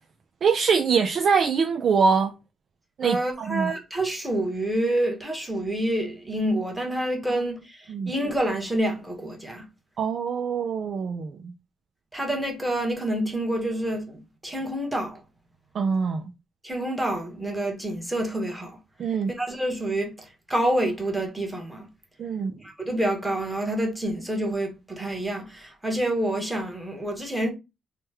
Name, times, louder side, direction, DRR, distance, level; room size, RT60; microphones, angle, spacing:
voice 1, 0.4-2.3 3.0-3.7 7.9-8.1 10.0-11.5 15.7-16.3 19.0-19.3 22.2-22.5, right 5 dB, 55° right, 0.4 m, -24 dB
voice 2, 3.0-9.7 12.1-15.2 16.6-18.8 19.3-21.9 22.6-27.5, right 1 dB, 5° right, 1.1 m, -28 dB
3.1 x 2.2 x 3.3 m
cardioid pair, 90°, 0 cm